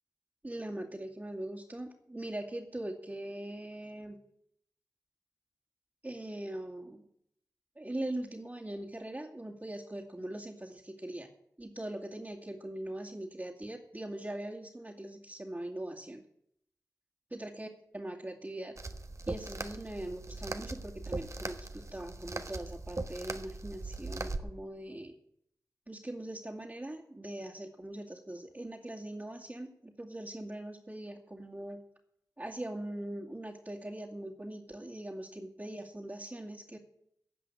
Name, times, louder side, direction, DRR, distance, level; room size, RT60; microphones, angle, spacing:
voice 1, 0.4-4.2 6.0-7.1 7.8-11.3 11.6-16.2 17.3-17.7 17.9-18.7 19.3-25.2 25.9-31.8 32.4-36.8, right 1 dB, 30° right, -5 dB, 2.4 m, -41 dB
sound 1, 18.8-24.4, right 2 dB, 45° right, 1.2 m, -40 dB
16.0 x 5.5 x 9.7 m, 0.72 s
cardioid pair, 40°, 7 cm